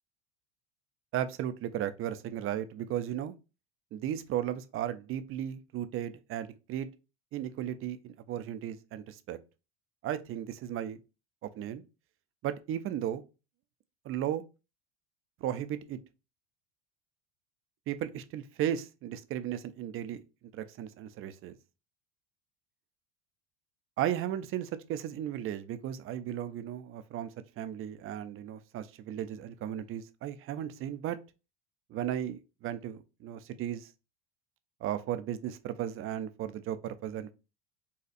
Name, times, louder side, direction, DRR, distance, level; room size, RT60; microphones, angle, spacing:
voice 1, 1.1-3.3 3.9-6.9 7.3-9.4 10.0-11.0 11.4-11.8 12.4-13.2 14.1-14.4 15.4-16.0 17.9-20.2 20.5-21.6 24.0-27.3 27.6-31.2 31.9-33.9 34.8-37.3, right 11 dB, 35° right, 0.4 m, -35 dB
4.1 x 2.4 x 2.4 m
supercardioid pair, 95°, 40 cm